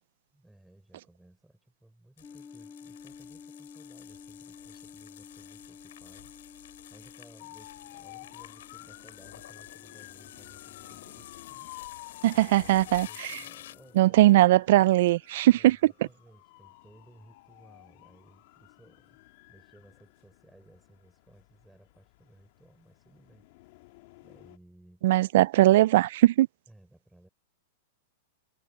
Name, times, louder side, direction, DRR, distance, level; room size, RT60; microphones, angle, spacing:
voice 1, 0.3-14.4 15.4-25.1 26.7-27.3, right 1 dB, 5° right, 6.3 m, -58 dB
sound 1, 2.2-14.0, left 12 dB, 75° left, 7.3 m, -50 dB
sound 2, 2.2-11.2, left 5 dB, 15° left, 6.0 m, -51 dB
sound 3, 7.4-24.6, left 20 dB, 55° left, 1.7 m, -52 dB
voice 2, 12.2-13.4 14.0-15.9 25.0-26.5, right 15 dB, 60° right, 0.3 m, -20 dB
supercardioid pair, 145°, 0 cm